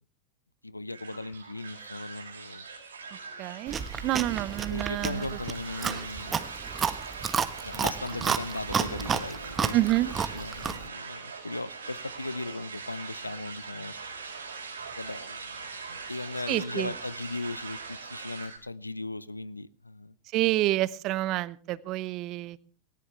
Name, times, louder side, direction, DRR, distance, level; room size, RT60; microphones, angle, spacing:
voice 1, 0.6-2.6 4.0-4.2 4.7-6.4 7.6-9.8 10.1-13.9 14.9-20.1, left 2 dB, 90° left, 20 dB, 0.6 m, -38 dB
sound 1, 0.9-18.6, right 5 dB, 75° right, 5.0 m, -41 dB
voice 2, 3.4-3.8 4.0-5.2 9.7-10.1 16.5-16.9 20.3-22.6, right 17 dB, 45° right, 20 dB, 0.8 m, -28 dB
Chewing mastication, 3.7-10.9, right 6 dB, 25° right, 1.3 m, -31 dB
18.0 x 18.0 x 3.3 m, 0.38 s
figure-of-eight pair, 85°, 0 cm